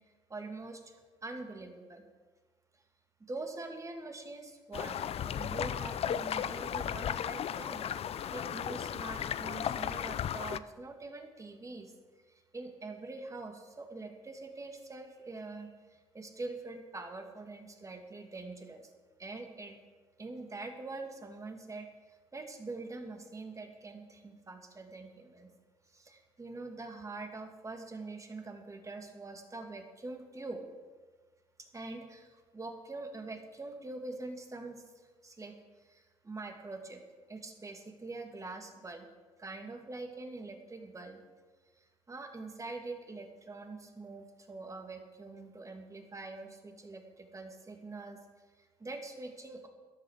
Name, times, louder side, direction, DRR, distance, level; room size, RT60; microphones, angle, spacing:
voice 1, 0.3-1.0 1.2-2.0 3.3-7.8 8.3-11.9 12.3-18.9 19.2-19.8 20.2-21.9 22.3-25.5 25.9-30.6 31.6-34.8 35.2-37.0 37.3-39.1 39.4-41.2 41.8-48.2 48.6-49.7, right 3 dB, 25° right, 4 dB, 2.7 m, -44 dB
sound 1, 4.7-10.6, left 9 dB, 55° left, 0.6 m, -35 dB
14.0 x 11.0 x 6.7 m, 1.4 s
supercardioid pair, 75°, 12 cm